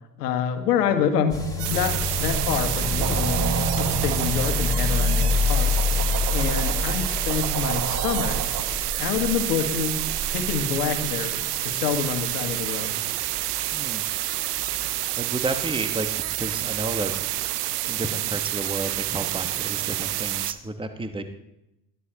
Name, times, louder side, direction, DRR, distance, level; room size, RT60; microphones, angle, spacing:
voice 1, 0.2-5.7 6.3-10.0 10.3-12.9, left 7 dB, 70° left, 7 dB, 1.7 m, -27 dB
sound 1, 1.3-18.1 18.3-18.4 18.6-18.7 18.9-19.0 19.3-19.4 20.1-20.2, left 3 dB, 10° left, 3.6 m, -29 dB
sound 2, 1.6-20.5, right 15 dB, 70° right, 0.8 m, -28 dB
sound 3, 2.6-11.1, right 6 dB, 35° right, 1.3 m, -33 dB
voice 2, 13.7-14.0 15.2-17.1 17.9-21.2, right 2 dB, 10° right, 7 dB, 1.4 m, -31 dB
21.0 x 14.5 x 3.0 m, 0.86 s
figure-of-eight pair, 60°, 48 cm